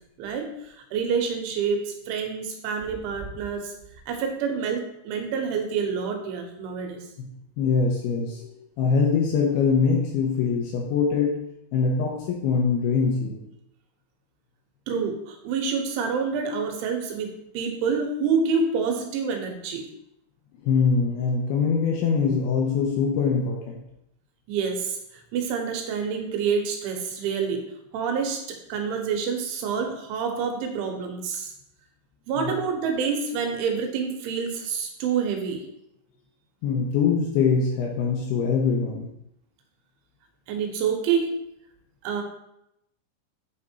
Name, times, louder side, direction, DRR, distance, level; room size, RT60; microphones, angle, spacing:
voice 1, 0.2-3.7 4.1-7.0 14.9-17.3 17.6-19.9 24.5-27.7 27.9-31.5 32.3-35.6 40.5-41.4 42.0-42.2, right 6 dB, 85° right, 3 dB, 3.4 m, -27 dB
voice 2, 7.6-8.5 8.8-11.3 11.7-13.4 20.6-23.8 32.4-32.5 36.6-39.1, left 5 dB, 75° left, -1 dB, 2.5 m, -23 dB
8.6 x 3.6 x 4.4 m, 0.80 s
omnidirectional pair, 5.4 m